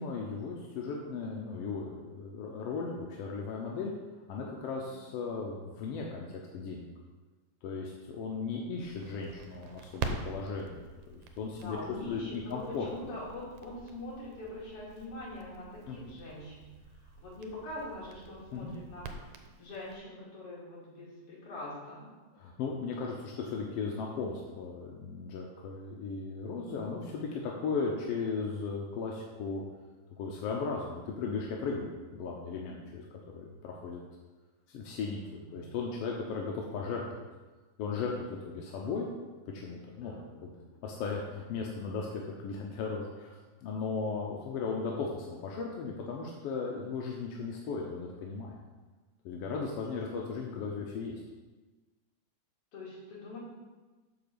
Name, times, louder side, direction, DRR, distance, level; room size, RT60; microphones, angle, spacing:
voice 1, 0.0-3.9 4.3-6.9 7.6-10.8 11.1-11.8 12.1-12.9 15.9-16.0 18.5-18.7 22.3-29.6 30.2-33.0 33.3-34.0 34.7-35.2 35.5-37.0 37.8-39.1 39.5-40.2 40.4-40.5 40.8-43.4 43.6-48.5 49.2-51.2, left 4 dB, 70° left, -1 dB, 1.6 m, -36 dB
Crackle, 8.8-20.0, right 4 dB, 90° right, 2.1 m, -45 dB
voice 2, 11.5-16.7 17.2-19.1 19.6-22.1 35.2-35.7 38.3-38.5 40.0-40.6 52.7-53.4, left 1 dB, 55° left, -6 dB, 3.2 m, -44 dB
6.9 x 4.5 x 6.7 m, 1.3 s
omnidirectional pair, 3.3 m